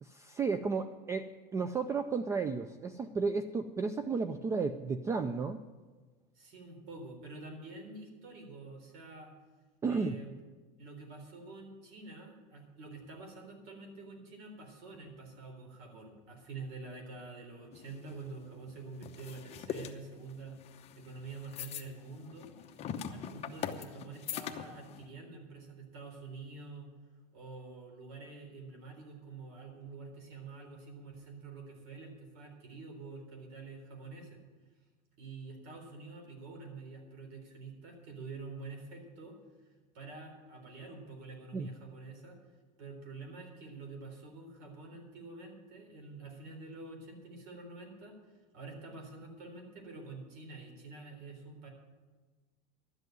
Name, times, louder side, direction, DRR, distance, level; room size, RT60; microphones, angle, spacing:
voice 1, 0.0-5.6 9.8-10.2 41.5-41.7, right 4 dB, 15° right, 11 dB, 0.3 m, -33 dB
voice 2, 6.4-9.3 9.9-10.3 10.8-20.6 21.0-22.5 23.1-26.9 27.3-34.4 35.2-39.4 39.9-42.4 42.8-48.2 48.5-51.7, right 3 dB, 60° right, 3 dB, 3.8 m, -47 dB
sound 1, 17.7-25.0, left 8 dB, 30° left, 0.8 m, -43 dB
12.5 x 8.1 x 9.1 m, 1.3 s
supercardioid pair, 150°, 21 cm